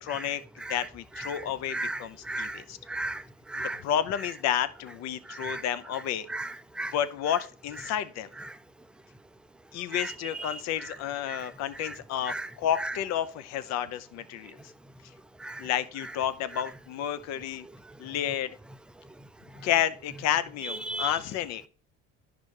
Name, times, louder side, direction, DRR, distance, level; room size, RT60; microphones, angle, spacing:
voice 1, 0.0-0.4 0.7-2.8 3.6-6.3 6.9-8.3 9.7-14.6 15.6-17.6 18.0-18.6 19.6-21.6, left 10 dB, 60° left, 0.7 m, -31 dB
voice 2, 1.7-2.6 2.9-3.2 3.5-3.8 5.3-5.6 6.3-6.9 8.4-8.5 9.9-10.1 10.4-10.5 10.8-10.9 11.3-11.4 11.8-11.9 12.3-12.5 12.8-12.9 15.4-15.6 20.6-21.2, right 2 dB, 5° right, 0.3 m, -35 dB
10.5 x 5.2 x 3.3 m
supercardioid pair, 95°, 29 cm